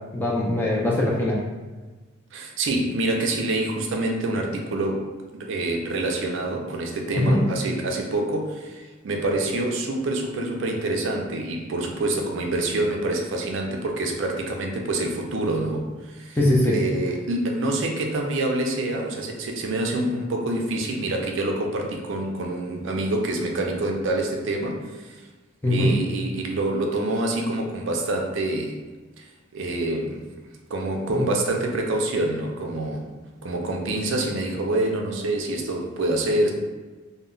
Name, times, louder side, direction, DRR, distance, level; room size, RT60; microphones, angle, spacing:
voice 1, 0.1-1.4 7.2-7.4 16.4-16.8 25.6-25.9 31.1-31.2, left 1 dB, 10° left, -4 dB, 0.4 m, -21 dB
voice 2, 2.3-5.1 5.3-16.4 16.7-25.1 25.7-28.8 29.2-29.3 29.5-30.3 30.7-33.1 33.4-36.5, right 2 dB, 65° right, 1 dB, 0.4 m, -26 dB
2.1 x 2.1 x 3.7 m, 1.3 s
head